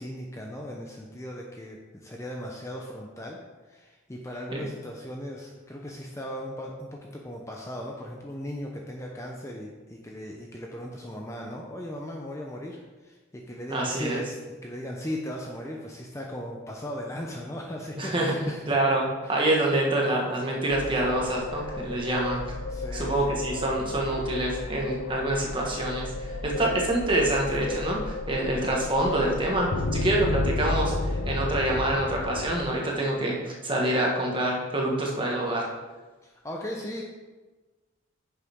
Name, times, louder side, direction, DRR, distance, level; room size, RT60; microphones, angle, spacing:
voice 1, 0.0-3.4 3.7-18.6 19.2-19.4 22.7-23.2 23.4-23.6 36.2-37.0, equal, 15° left, -1 dB, 0.7 m, -37 dB
voice 2, 13.7-14.2 18.0-18.3 18.7-22.4 22.9-35.7, right 1 dB, 25° right, -2 dB, 1.5 m, -26 dB
sound 1, 20.7-32.6, left 2 dB, 85° left, 0.7 m, -32 dB
9.9 x 6.9 x 3.7 m, 1.2 s
head